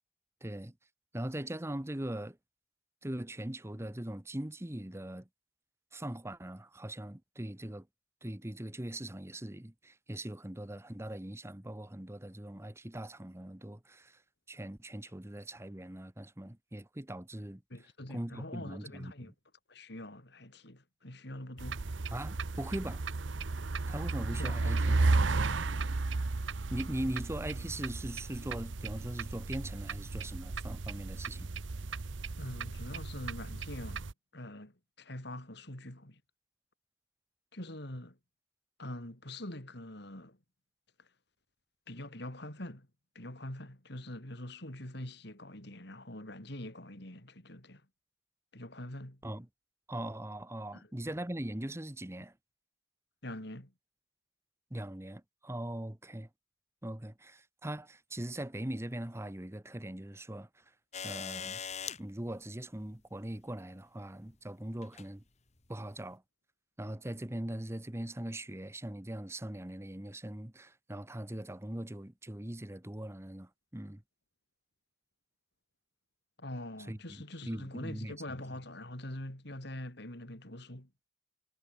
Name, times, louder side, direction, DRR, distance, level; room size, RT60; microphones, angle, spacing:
voice 1, 0.4-0.7 1.1-2.4 3.0-5.3 5.9-7.9 8.2-14.2 14.5-17.6 18.1-19.1 22.1-23.0 23.9-25.0 26.7-31.5 49.2-49.5 49.9-52.3 54.7-56.3 56.8-60.6 61.0-61.6 62.0-65.2 65.7-66.2 66.8-74.0 76.9-78.2, right 1 dB, 15° right, 1.1 m, -40 dB
voice 2, 17.7-19.3 19.7-21.8 24.3-25.5 32.4-34.1 34.3-36.2 37.5-38.2 38.8-40.4 41.0-41.1 41.9-42.9 43.1-47.8 48.5-49.2 50.7-50.9 53.2-53.7 76.4-80.9, left 1 dB, 60° left, 4.4 m, -44 dB
sound 1, 21.6-34.1, right 3 dB, 80° right, 0.9 m, -34 dB
sound 2, 60.9-62.0 63.4-63.5 64.8-65.1 66.0-66.1, left 7 dB, 35° left, 1.7 m, -40 dB
head